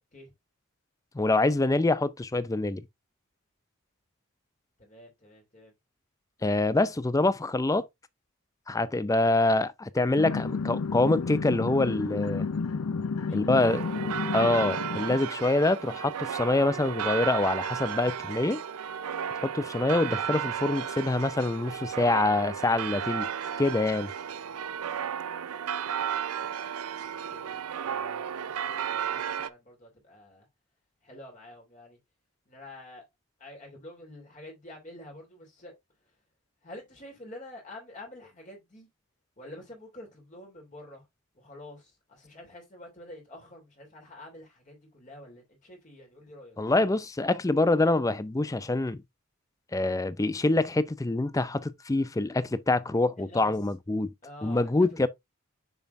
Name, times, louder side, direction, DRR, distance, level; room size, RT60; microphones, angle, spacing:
voice 1, 1.1-2.8 6.4-7.9 8.7-12.5 13.3-13.9 14.3-18.6 19.3-23.3 23.6-24.1 46.6-49.0 49.7-54.1 54.4-55.1, left 2 dB, 15° left, 0.4 m, -25 dB
voice 2, 4.8-5.7 13.3-14.0 27.3-30.5 31.0-32.0 32.5-33.0 33.4-35.7 36.6-38.9 39.4-41.0 41.3-46.6 53.2-53.5 54.2-55.1, left 1 dB, 35° left, 2.8 m, -48 dB
sound 1, 10.1-15.2, left 4 dB, 80° left, 0.5 m, -31 dB
sound 2, 13.6-29.5, right 8 dB, 80° right, 0.5 m, -34 dB
6.9 x 6.0 x 2.5 m
head